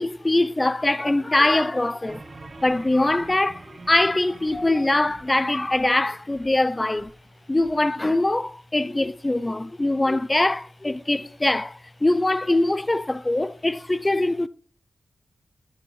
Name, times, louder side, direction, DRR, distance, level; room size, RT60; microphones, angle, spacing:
voice 1, 0.0-2.2 2.6-7.1 7.5-14.5, left 2 dB, 20° left, 0.3 m, -22 dB
sound 1, 2.1-7.8, right 3 dB, 40° right, 0.7 m, -46 dB
9.4 x 8.5 x 3.1 m
wide cardioid pair, 115°, 0 cm